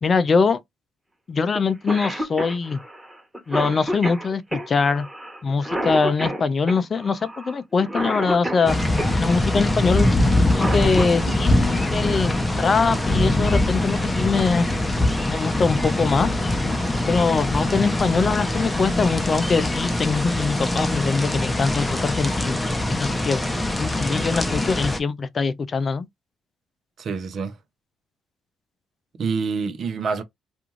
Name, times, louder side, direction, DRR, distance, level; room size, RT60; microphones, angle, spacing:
voice 1, 0.0-0.6 1.3-2.8 3.5-5.1 5.4-8.8 9.2-14.7 15.3-16.4 17.1-22.6 22.9-23.4 23.8-26.1, left 4 dB, 40° left, 0.4 m, -22 dB
Cough, 1.5-1.6 1.9-9.2 10.3-11.4 13.0-13.1 14.1-14.4 14.9-15.0 15.3-15.8, equal, 10° right, 1.1 m, -29 dB
sound 1, 8.7-25.0, left 1 dB, 15° left, 0.7 m, -23 dB
voice 2, 27.0-27.5 29.2-30.2, right 5 dB, 55° right, 0.7 m, -26 dB
2.5 x 2.3 x 3.0 m
supercardioid pair, 70°, 0 cm